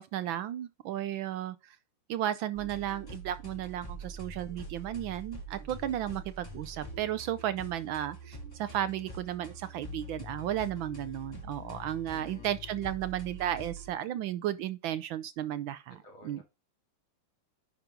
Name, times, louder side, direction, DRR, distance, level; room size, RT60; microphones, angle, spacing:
voice 1, 0.0-1.8 2.1-16.0 16.2-16.4, right 11 dB, 75° right, 1.3 m, -34 dB
sound 1, 2.5-13.9, right 1 dB, 10° left, 2.1 m, -45 dB
voice 2, 12.1-12.5 16.0-16.4, left 4 dB, 65° left, 3.3 m, -52 dB
10.5 x 5.2 x 3.5 m
omnidirectional pair, 2.4 m